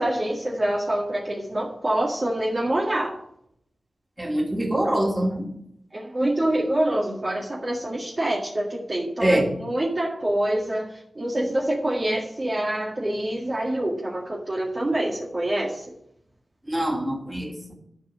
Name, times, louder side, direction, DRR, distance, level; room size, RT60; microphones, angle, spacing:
voice 1, 0.0-3.1 5.9-16.0, right 1 dB, 40° right, -3 dB, 1.9 m, -26 dB
voice 2, 4.2-5.5 9.2-9.5 16.7-17.7, right 1 dB, 20° right, 0 dB, 2.7 m, -24 dB
11.0 x 4.7 x 8.1 m, 0.75 s
cardioid pair, 45°, 0 cm